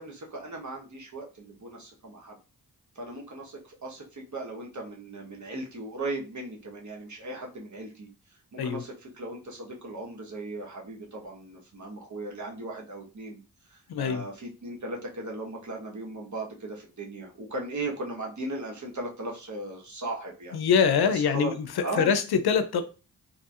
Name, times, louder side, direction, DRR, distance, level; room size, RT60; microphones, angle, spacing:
voice 1, 0.0-2.4 2.9-13.4 13.7-20.6 21.1-21.5 21.8-22.2, right 2 dB, 50° right, 1.1 m, -37 dB
voice 2, 13.9-14.3 20.5-22.8, left 6 dB, 75° left, 0.5 m, -24 dB
3.0 x 2.5 x 2.4 m
cardioid pair, 45°, 39 cm